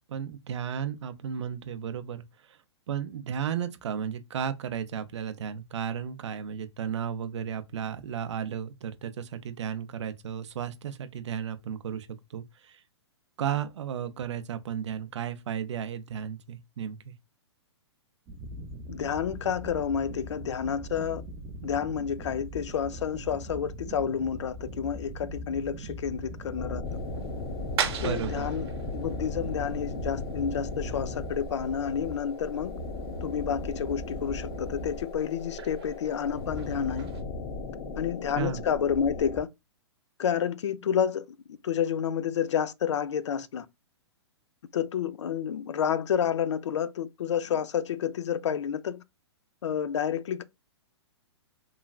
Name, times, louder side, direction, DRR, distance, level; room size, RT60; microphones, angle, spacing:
voice 1, 0.1-2.6 2.9-12.8 13.4-17.1 28.0-28.5 38.4-38.6, right 8 dB, 80° right, 0.4 m, -34 dB
sound 1, 18.3-32.2, equal, 20° right, 0.4 m, -41 dB
voice 2, 18.9-21.2 21.6-26.8 28.0-28.7 28.9-32.7 33.2-37.1 38.0-39.5 40.2-43.7 44.7-49.0 49.6-50.4, left 8 dB, 85° left, 0.4 m, -30 dB
sound 2, 26.6-39.4, left 3 dB, 40° left, 0.8 m, -37 dB
sound 3, 26.8-37.2, right 8 dB, 60° right, 0.9 m, -41 dB
3.1 x 2.3 x 2.3 m
hypercardioid pair, 145°, 15 cm